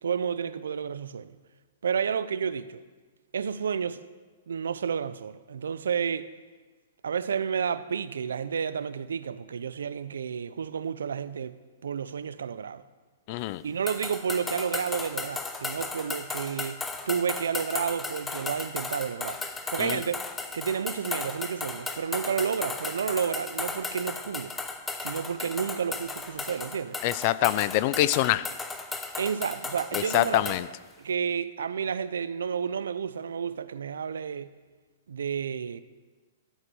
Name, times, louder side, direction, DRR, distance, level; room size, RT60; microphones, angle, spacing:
voice 1, 0.0-1.3 1.8-2.8 3.3-4.0 4.5-6.3 7.0-12.8 13.6-19.4 19.7-20.2 20.5-24.6 25.0-27.0 29.2-30.6 31.0-34.5 35.1-35.8, right 7 dB, 90° right, 0.5 m, -31 dB
voice 2, 13.3-13.6 19.8-20.0 27.0-28.5 29.9-30.7, left 15 dB, 45° left, 0.4 m, -25 dB
sound 1, 13.9-30.7, left 3 dB, 10° left, 0.8 m, -35 dB
13.0 x 8.1 x 6.2 m
hypercardioid pair, 140°, 0 cm